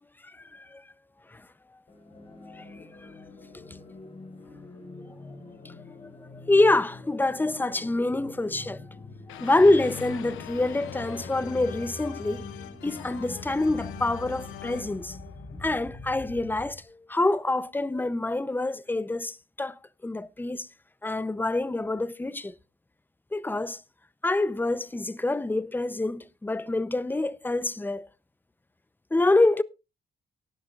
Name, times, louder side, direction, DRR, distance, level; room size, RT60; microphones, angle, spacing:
sound 1, 1.9-16.8, left 2 dB, 30° left, 3.5 m, -44 dB
voice 1, 6.0-8.8 9.3-12.5 12.8-15.2 15.6-20.7 21.0-22.5 23.3-23.8 24.2-28.1 29.1-29.6, left 2 dB, 10° left, 0.6 m, -26 dB
sound 2, 9.3-16.3, left 11 dB, 85° left, 1.0 m, -42 dB
18.0 x 10.5 x 2.4 m
cardioid pair, 90°, 20 cm